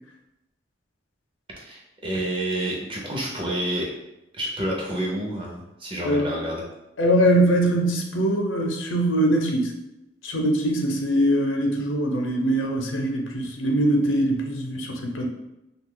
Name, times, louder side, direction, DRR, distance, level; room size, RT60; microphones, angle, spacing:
voice 1, 1.6-3.9 4.3-6.6, right 1 dB, 25° right, -2 dB, 0.6 m, -29 dB
voice 2, 7.0-9.7 10.2-15.3, right 1 dB, 85° left, 2 dB, 0.6 m, -22 dB
2.8 x 2.3 x 3.7 m, 0.92 s
head